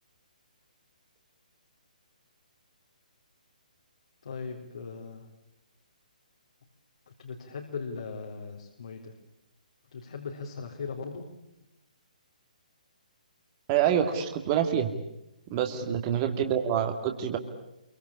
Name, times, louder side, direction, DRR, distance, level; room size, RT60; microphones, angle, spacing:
voice 1, 4.2-5.3 7.2-9.1 9.9-11.3 15.9-16.0, left 5 dB, 55° left, 0 dB, 3.8 m, -39 dB
voice 2, 13.7-14.9 15.5-17.4, right 9 dB, 25° right, 5 dB, 2.3 m, -26 dB
27.5 x 24.0 x 8.6 m, 0.89 s
figure-of-eight pair, 135°, 5 cm